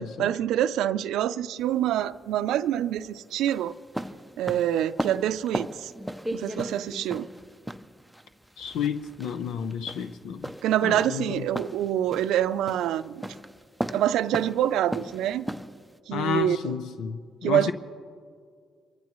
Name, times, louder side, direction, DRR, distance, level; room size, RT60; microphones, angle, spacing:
voice 1, 0.0-3.7 4.4-5.9 6.3-7.3 10.6-13.3 13.9-15.5 16.1-16.7 17.4-17.7, right 11 dB, 85° right, 13 dB, 0.5 m, -26 dB
sound 1, 1.6-16.0, right 1 dB, ahead, 0.5 m, -37 dB
voice 2, 8.6-10.5 10.8-11.5 16.1-17.7, left 7 dB, 85° left, 9 dB, 0.6 m, -31 dB
29.0 x 15.0 x 3.1 m, 2.1 s
cardioid pair, 90°, 0 cm